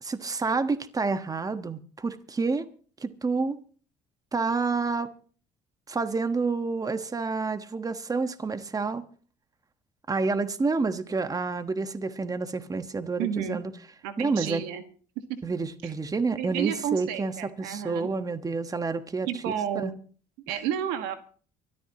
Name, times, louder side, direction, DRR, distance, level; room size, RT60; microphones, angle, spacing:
voice 1, 0.0-2.7 3.0-3.6 4.3-5.1 5.9-9.0 10.1-13.7 14.2-14.6 15.4-19.9, right 4 dB, 25° right, 1.3 m, -29 dB
voice 2, 13.2-13.6 14.0-14.8 15.8-15.9 16.3-18.1 19.3-20.0 20.5-21.1, right 9 dB, 85° right, 1.6 m, -31 dB
24.5 x 13.0 x 2.9 m
supercardioid pair, 80°, 15 cm